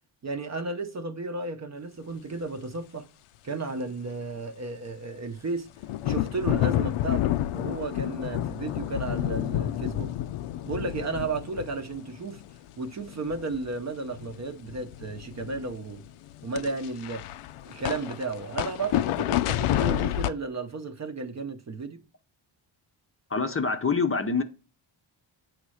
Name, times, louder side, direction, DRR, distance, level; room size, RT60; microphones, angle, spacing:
voice 1, 0.2-3.1 3.4-5.7 6.0-10.1 10.7-12.4 12.8-16.0 16.4-17.3 17.6-22.0, right 3 dB, 35° right, 0.7 m, -33 dB
sound 1, 5.8-12.7 13.1-13.7 14.0-20.3, left 13 dB, 85° left, 0.6 m, -29 dB
voice 2, 23.3-24.4, left 4 dB, 25° left, 0.6 m, -25 dB
8.5 x 3.1 x 6.3 m
wide cardioid pair, 155°, 49 cm